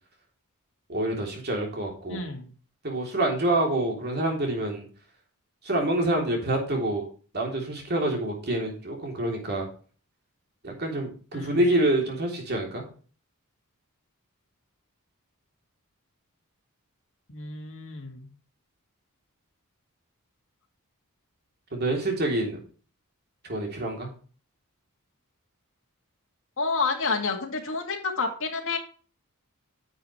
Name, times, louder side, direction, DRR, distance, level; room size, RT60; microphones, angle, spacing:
voice 1, 0.9-2.2 2.8-4.8 5.6-7.0 7.3-9.7 10.6-12.8 21.7-22.6 23.4-24.1, right 1 dB, 45° right, 1 dB, 3.2 m, -27 dB
voice 2, 2.1-2.5 11.3-11.6 17.3-18.3 26.6-28.8, left 4 dB, 60° left, 2 dB, 2.2 m, -29 dB
10.0 x 7.2 x 3.2 m, 0.40 s
head